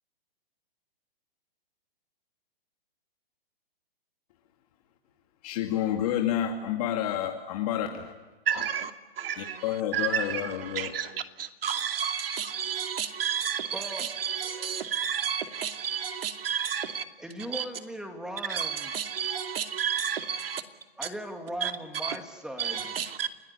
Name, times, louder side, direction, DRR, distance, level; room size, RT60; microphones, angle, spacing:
voice 1, 5.4-8.1 8.6-8.7 9.4-10.9, left 10 dB, 40° left, 2.2 m, -29 dB
voice 2, 8.5-8.9 9.2-9.6 9.9-17.0 17.5-17.6 18.5-20.6 21.0-21.1 21.6-21.7 22.0-22.2 22.6-23.3, right 8 dB, 70° right, 2.6 m, -31 dB
voice 3, 13.7-14.1 17.2-18.9 21.0-22.9, equal, ahead, 2.6 m, -38 dB
29.0 x 18.0 x 9.9 m
hypercardioid pair, 150°, 30 cm